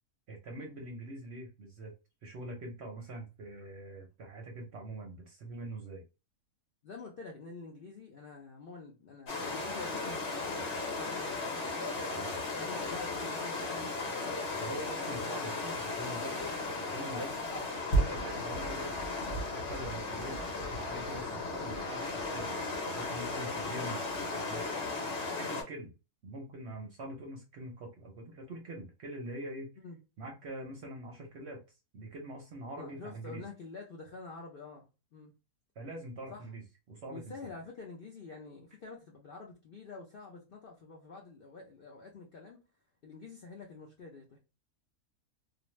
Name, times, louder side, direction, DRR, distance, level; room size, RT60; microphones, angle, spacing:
voice 1, 0.3-1.9 2.2-6.0 12.1-12.4 14.6-16.4 16.7-17.3 17.9-19.2 19.5-20.4 20.7-22.6 22.9-24.7 25.4-25.9 26.2-29.7 30.2-31.6 31.9-33.4 35.8-37.2, right 1 dB, 60° right, 0.7 m, -44 dB
voice 2, 6.8-10.5 11.0-11.6 12.6-14.4 29.8-30.0 32.8-34.9 35.1-35.3 36.3-36.4 37.1-42.6 43.0-44.4, left 4 dB, 70° left, 0.5 m, -48 dB
sound 1, 9.3-25.6, left 2 dB, 50° left, 1.0 m, -35 dB
2.5 x 2.1 x 3.0 m
omnidirectional pair, 1.6 m